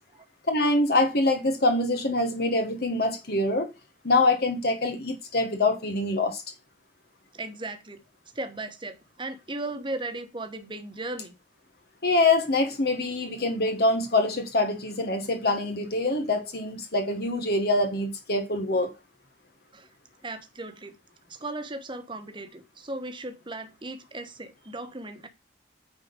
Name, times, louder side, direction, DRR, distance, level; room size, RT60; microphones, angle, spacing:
voice 1, 0.5-3.7 4.0-6.4 12.0-18.9, left 2 dB, 55° left, 1.5 m, -25 dB
voice 2, 7.3-8.0 8.3-11.3 19.7-19.9 20.2-21.0 21.3-25.3, right 2 dB, 25° right, 1.3 m, -37 dB
9.5 x 4.4 x 5.2 m
head